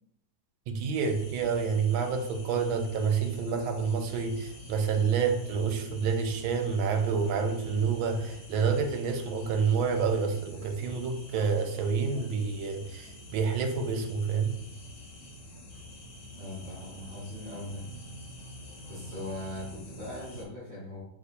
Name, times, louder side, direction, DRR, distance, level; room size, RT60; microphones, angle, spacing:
voice 1, 0.7-14.5, right 5 dB, 90° right, 6 dB, 1.4 m, -28 dB
sound 1, 0.9-20.4, left 1 dB, 45° left, 0.9 m, -47 dB
voice 2, 16.3-17.9 18.9-21.0, left 1 dB, 25° right, -13 dB, 1.7 m, -40 dB
5.9 x 2.8 x 2.7 m, 0.75 s
omnidirectional pair, 2.2 m